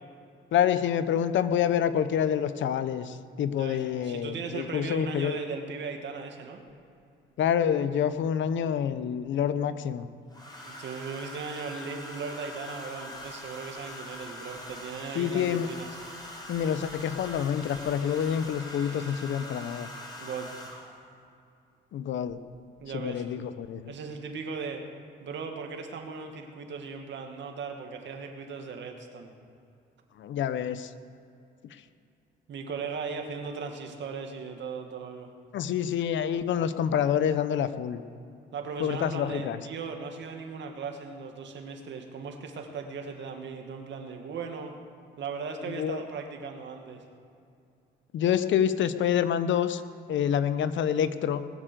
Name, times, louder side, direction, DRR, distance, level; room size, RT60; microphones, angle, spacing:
voice 1, 0.5-5.4 7.4-10.1 15.1-15.7 16.5-19.9 21.9-22.4 22.9-23.9 30.2-30.9 35.5-38.0 38.8-39.6 45.7-46.0 48.1-49.8 50.1-51.4, left 9 dB, 70° left, 13 dB, 0.8 m, -27 dB
voice 2, 3.6-6.6 10.6-15.9 20.2-20.6 22.8-23.2 23.9-24.8 25.2-29.3 32.5-35.3 38.5-44.7 45.2-47.0, right 5 dB, 65° right, 4 dB, 2.0 m, -38 dB
Domestic sounds home sounds, 6.7-6.8 8.2-8.9 10.3-21.1 22.3-22.6 22.8-23.2, left 1 dB, 20° left, 3.7 m, -43 dB
20.5 x 7.5 x 6.8 m, 2.5 s
cardioid pair, 90°, 20 cm